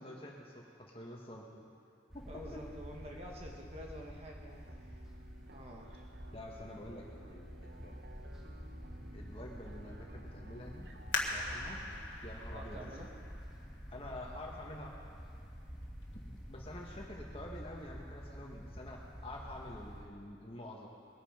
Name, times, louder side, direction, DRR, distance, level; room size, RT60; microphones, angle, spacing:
voice 1, 0.0-1.7 2.1-2.6 6.3-8.0 9.1-10.9 11.3-11.8 12.2-13.1 13.9-14.9 16.2-20.9, left 1 dB, 30° left, -2 dB, 1.8 m, -48 dB
sound 1, 2.1-20.1, equal, 5° right, 2.0 m, -49 dB
voice 2, 2.2-5.0 5.5-6.1 12.5-13.1, equal, 35° right, -1 dB, 1.6 m, -49 dB
sound 2, 4.5-12.0, right 1 dB, 65° right, 1.0 m, -58 dB
sound 3, 11.1-14.5 15.1-15.2 15.8-16.2 16.6-16.7, left 3 dB, 90° left, 1.7 m, -41 dB
21.5 x 9.1 x 5.2 m, 2.5 s
head